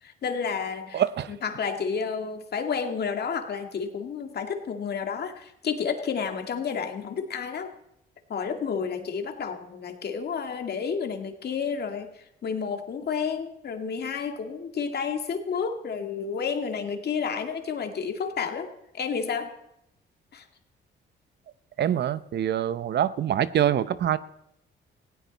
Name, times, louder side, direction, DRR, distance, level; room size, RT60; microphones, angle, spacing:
voice 1, 0.0-1.0 1.3-7.7 8.3-18.7 18.9-19.5 20.3-20.4, left 6 dB, 55° left, 5 dB, 2.1 m, -31 dB
voice 2, 0.9-1.3 21.8-24.2, right 10 dB, 60° right, 15 dB, 0.7 m, -25 dB
18.5 x 16.5 x 4.1 m, 0.78 s
cardioid pair, 90°, 20 cm